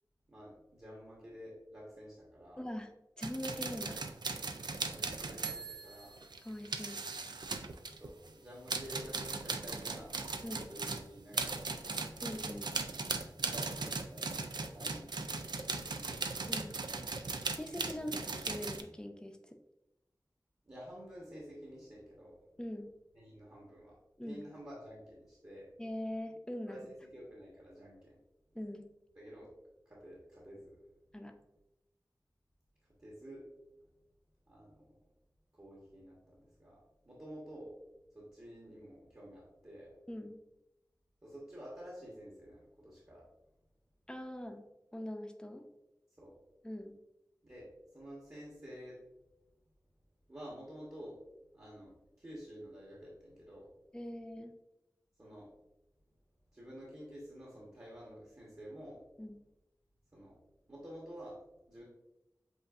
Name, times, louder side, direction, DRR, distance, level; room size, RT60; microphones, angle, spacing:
voice 1, 0.3-2.6 4.8-6.2 8.0-12.0 13.4-14.3 14.6-16.2 17.9-18.3 20.6-22.4 23.1-24.0 24.2-25.7 26.7-28.2 29.1-29.5 29.8-30.8 33.0-33.4 34.5-34.9 35.5-37.7 38.1-39.9 41.2-43.2 46.2-46.3 47.4-49.0 50.3-51.2 51.5-53.7 55.2-55.5 56.5-59.0 60.1-60.4 60.7-61.4 61.7-61.8, equal, 40° right, -5 dB, 1.3 m, -50 dB
voice 2, 2.6-2.9 3.2-4.0 6.4-7.0 10.4-10.7 12.2-12.7 16.5-16.7 17.5-19.6 22.6-22.9 24.2-24.4 25.8-26.9 28.5-28.9 31.1-31.3 40.1-40.4 44.1-44.6 44.9-45.7 46.6-46.9 53.9-54.5 59.2-59.4, left 1 dB, 10° left, 5 dB, 0.5 m, -42 dB
sound 1, 3.2-8.3 8.7-18.8, right 3 dB, 85° right, 0.4 m, -38 dB
7.6 x 2.6 x 2.5 m, 0.91 s
wide cardioid pair, 60°, 7 cm